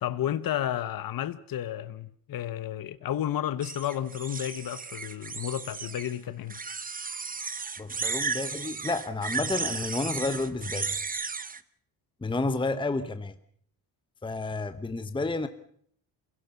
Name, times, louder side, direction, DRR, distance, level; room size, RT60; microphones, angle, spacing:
voice 1, 0.0-6.6, left 11 dB, 50° left, 1.1 m, -32 dB
sound 1, 3.6-6.1 6.5-11.6, right 5 dB, 20° right, 0.9 m, -34 dB
voice 2, 7.8-11.0 12.2-13.3 14.2-15.5, left 3 dB, 10° left, 1.0 m, -30 dB
28.0 x 17.5 x 7.0 m
cardioid pair, 130°, 43 cm